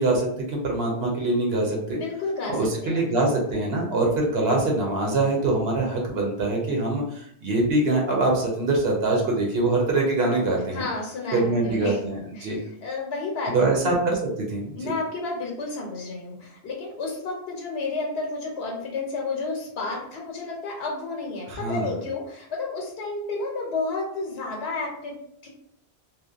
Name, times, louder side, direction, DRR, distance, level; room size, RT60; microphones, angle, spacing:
voice 1, 0.0-2.0 2.5-10.8 11.3-12.6 13.5-14.9 21.5-21.9, right 2 dB, 80° right, -1 dB, 0.9 m, -24 dB
voice 2, 1.9-3.0 10.7-12.0 12.4-13.9 14.8-25.5, left 3 dB, 85° left, -1 dB, 0.9 m, -31 dB
2.6 x 2.1 x 2.3 m, 0.68 s
omnidirectional pair, 1.0 m